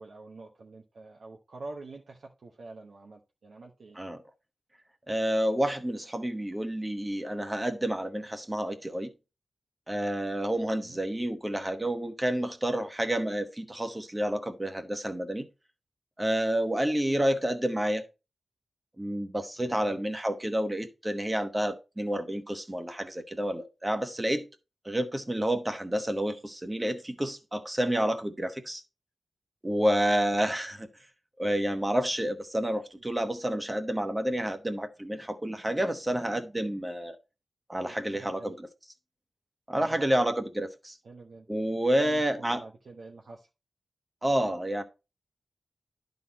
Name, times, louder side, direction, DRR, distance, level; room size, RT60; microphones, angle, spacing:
voice 1, 0.0-4.0 10.7-11.0 19.7-20.0 38.0-38.6 39.8-40.2 41.0-41.5 42.0-43.5, right 3 dB, 70° right, 1.0 m, -46 dB
voice 2, 5.1-9.1 9.9-15.5 16.2-18.0 19.0-24.5 24.8-28.8 29.6-30.9 31.4-37.1 37.7-38.7 39.7-41.0 41.5-42.6 44.2-44.8, right 1 dB, 15° right, 1.1 m, -29 dB
11.0 x 4.1 x 4.1 m
wide cardioid pair, 90°, 0 cm